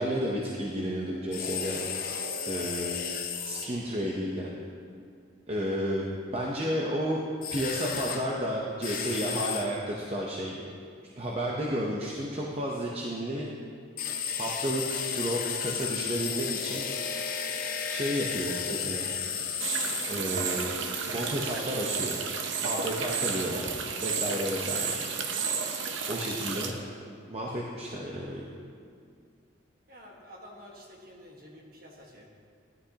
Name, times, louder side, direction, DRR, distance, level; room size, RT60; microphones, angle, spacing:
voice 1, 0.0-1.8 2.5-3.0 3.4-4.5 5.5-7.2 7.5-10.6 11.2-13.5 14.4-16.9 17.9-19.1 20.1-20.7 21.1-22.2 22.6-24.9 26.1-26.7 27.2-28.5, equal, 30° right, -3 dB, 0.8 m, -32 dB
sound 1, 1.3-3.7 7.4-8.2 8.8-9.6 14.0-20.2, left 7 dB, 45° left, 0.8 m, -33 dB
sound 2, 19.6-26.7, right 5 dB, 70° right, 0.8 m, -32 dB
voice 2, 29.9-32.3, equal, 45° right, -1 dB, 1.5 m, -49 dB
13.0 x 11.0 x 2.9 m, 2.2 s
head